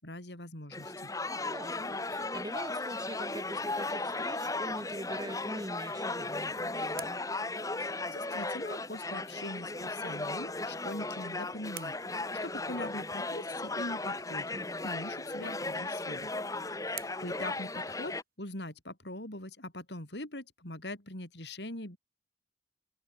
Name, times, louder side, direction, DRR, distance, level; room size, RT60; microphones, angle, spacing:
voice 1, 0.0-1.1 7.8-14.6 14.8-16.3 16.8-22.0, left 1 dB, 70° left, 6.3 m, -42 dB
sound 1, 0.7-18.2, left 2 dB, 20° left, 2.1 m, -36 dB
voice 2, 1.3-7.2 14.5-14.9 16.5-16.9, right 1 dB, 20° right, 6.4 m, -44 dB
sound 2, 10.7-13.1 15.3-18.5, right 14 dB, 55° right, 7.1 m, -53 dB
open air
head